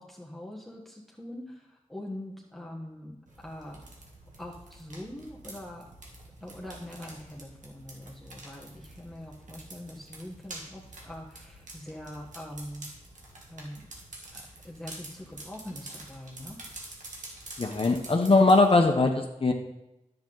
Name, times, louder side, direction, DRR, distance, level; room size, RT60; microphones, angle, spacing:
voice 1, 0.0-3.9 4.4-5.9 6.4-12.9 13.5-13.9 14.3-16.6, left 1 dB, ahead, -2 dB, 1.5 m, -43 dB
sound 1, 3.3-18.8, right 2 dB, 80° right, 1.8 m, -47 dB
voice 2, 17.6-19.5, left 3 dB, 45° left, 2 dB, 1.0 m, -21 dB
10.0 x 7.8 x 3.9 m, 0.91 s
cardioid pair, 50°, 13 cm